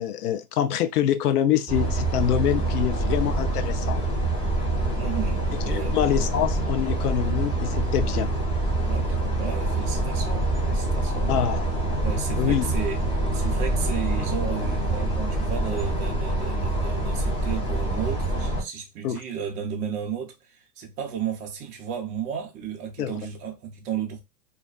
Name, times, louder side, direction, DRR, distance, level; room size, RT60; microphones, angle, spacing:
voice 1, 0.0-4.0 5.7-8.3 11.3-11.7 12.4-12.7 19.0-19.2 23.0-23.1, left 10 dB, 70° left, 0.6 m, -25 dB
sound 1, 1.7-18.6, right 2 dB, 10° left, 0.9 m, -25 dB
voice 2, 4.9-6.0 8.8-11.3 12.0-13.0 13.3-24.2, right 7 dB, 20° right, 0.4 m, -33 dB
2.5 x 2.2 x 2.3 m
hypercardioid pair, 120°, 47 cm